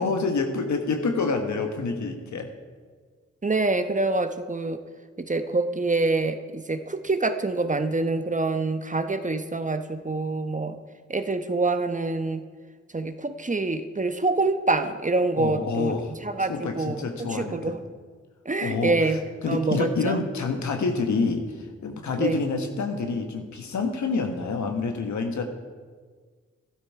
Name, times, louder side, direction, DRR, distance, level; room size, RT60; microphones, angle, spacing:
voice 1, 0.0-2.5 15.4-17.7 18.6-25.4, left 4 dB, 70° left, 5 dB, 1.4 m, -28 dB
voice 2, 3.4-4.8 5.2-10.8 11.1-12.4 12.9-15.9 16.2-17.8 18.4-19.2 19.5-20.2 22.2-22.4, right 3 dB, 25° right, 9 dB, 1.0 m, -26 dB
12.5 x 12.0 x 4.8 m, 1.6 s
supercardioid pair, 40°, 30 cm